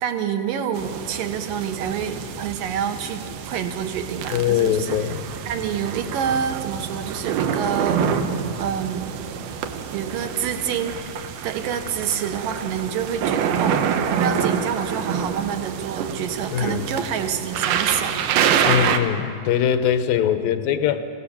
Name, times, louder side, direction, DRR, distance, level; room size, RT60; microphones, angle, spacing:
voice 1, 0.0-5.1 5.5-8.0 8.6-9.1 9.9-11.0 11.4-18.1 18.6-18.9, right 8 dB, 70° right, 7 dB, 2.8 m, -27 dB
sound 1, 0.7-19.0, right 7 dB, 90° right, 3.0 m, -27 dB
voice 2, 4.3-5.2 16.5-16.9 18.6-21.1, left 9 dB, 75° left, 9 dB, 2.6 m, -22 dB
25.5 x 17.5 x 7.2 m, 2.5 s
omnidirectional pair, 4.2 m